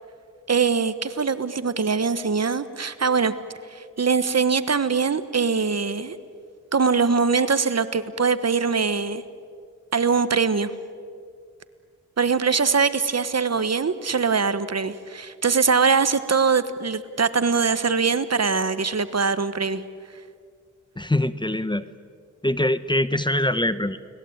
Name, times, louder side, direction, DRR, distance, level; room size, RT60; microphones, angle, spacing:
voice 1, 0.5-3.3 3.7-6.2 6.7-9.2 9.9-10.7 12.2-19.8, right 5 dB, 50° right, 13 dB, 1.4 m, -22 dB
voice 2, 21.0-21.9 22.4-24.0, left 1 dB, 15° left, 14 dB, 1.0 m, -23 dB
30.0 x 20.0 x 8.9 m, 2.1 s
cardioid pair, 50°, 32 cm